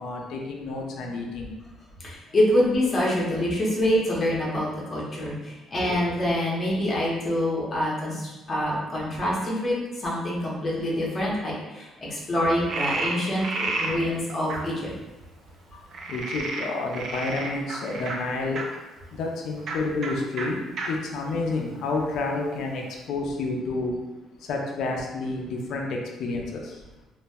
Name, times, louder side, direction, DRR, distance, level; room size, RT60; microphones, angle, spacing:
voice 1, 0.0-1.5 16.1-18.6 19.1-20.6 20.9-23.9 24.5-26.7, left 3 dB, 60° left, 0 dB, 0.4 m, -29 dB
voice 2, 2.0-14.9, left 1 dB, 20° left, -5 dB, 0.6 m, -26 dB
Frog, 12.7-13.9 14.5-14.6 15.9-18.6 19.6-19.8 20.0-20.1 20.4-20.5 20.8-20.9 21.5-22.2, right 3 dB, 45° right, 0.4 m, -31 dB
2.3 x 2.0 x 3.4 m, 1.1 s
cardioid pair, 180°, 0 cm